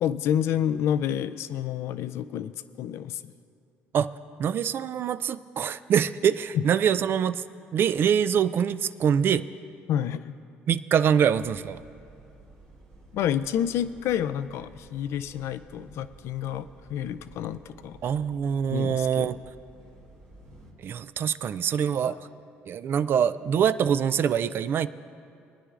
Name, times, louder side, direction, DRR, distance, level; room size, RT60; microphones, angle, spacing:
voice 1, 0.0-3.3 6.5-6.7 9.9-10.2 13.1-18.0 18.7-19.4, left 10 dB, 70° left, 13 dB, 0.3 m, -29 dB
voice 2, 4.4-7.4 7.7-9.4 10.7-11.8 18.0-19.4 20.8-22.2 22.7-24.9, right 8 dB, 55° right, 14 dB, 0.3 m, -24 dB
sound 1, 11.3-20.7, right 2 dB, 90° right, 2.9 m, -52 dB
23.0 x 9.8 x 2.5 m, 2.4 s
supercardioid pair, 85°, 5 cm